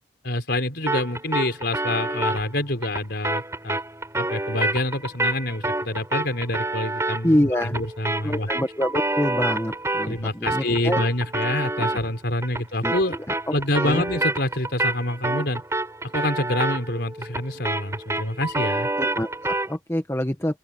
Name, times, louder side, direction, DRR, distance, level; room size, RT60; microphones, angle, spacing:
voice 1, 0.2-3.8 4.2-8.5 10.1-13.2 13.5-15.6 16.0-18.9, left 1 dB, 55° left, 4.9 m, -27 dB
sound 1, 0.9-10.2 10.5-19.8, right 2 dB, 15° right, 4.9 m, -28 dB
voice 2, 7.2-7.7 8.2-11.0 11.8-11.9 12.8-12.9 13.5-13.6 13.8-14.0 19.0-20.6, left 1 dB, 15° left, 1.4 m, -25 dB
open air
head